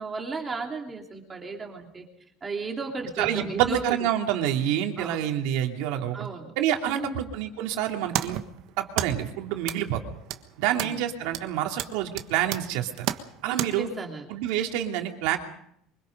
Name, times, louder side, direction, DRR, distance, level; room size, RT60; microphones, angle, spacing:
voice 1, 0.0-2.0 2.4-4.1 5.0-5.2 6.1-6.5 6.8-7.3 10.7-11.0 13.5-14.2, right 4 dB, 15° right, 2 dB, 3.1 m, -35 dB
voice 2, 3.2-6.3 6.6-8.4 8.8-10.0 10.6-13.1 13.4-13.9 14.3-15.4, right 11 dB, 70° right, 3 dB, 2.9 m, -27 dB
sound 1, 7.8-13.7, right 12 dB, 55° right, 1.4 m, -35 dB
24.5 x 23.0 x 5.3 m, 0.71 s
cardioid pair, 170°, 0 cm